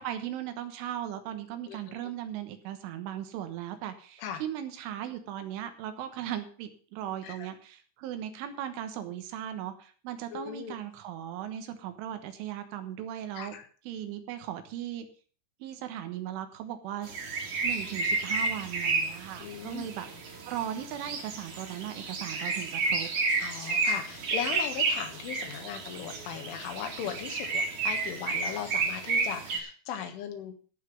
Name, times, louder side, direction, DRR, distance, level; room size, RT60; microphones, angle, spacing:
voice 1, 0.0-13.5 13.9-15.1 15.6-17.3 17.6-23.1, right 11 dB, 80° right, 8 dB, 3.6 m, -38 dB
voice 2, 1.7-2.1 4.2-4.4 7.2-7.5 10.3-10.8 13.4-13.6 19.4-19.9 23.4-30.5, left 8 dB, 75° left, 6 dB, 3.9 m, -38 dB
sound 1, 17.0-29.6, right 3 dB, 50° right, 2.9 m, -31 dB
15.0 x 5.8 x 7.3 m, 0.42 s
omnidirectional pair, 5.9 m